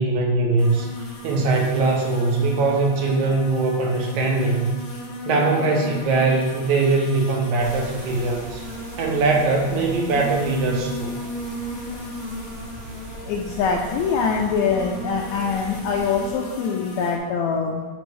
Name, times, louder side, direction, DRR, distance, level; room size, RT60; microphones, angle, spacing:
voice 1, 0.0-4.7 5.3-8.7 9.0-11.2, right 3 dB, 75° right, 1 dB, 1.9 m, -21 dB
sound 1, 0.6-17.2, left 1 dB, 65° left, 1.5 m, -36 dB
sound 2, 7.6-16.3, right 2 dB, 55° right, 1.3 m, -40 dB
voice 2, 13.3-17.9, left 5 dB, 85° left, 0 dB, 1.7 m, -24 dB
7.8 x 5.2 x 3.2 m, 1.3 s
omnidirectional pair, 3.8 m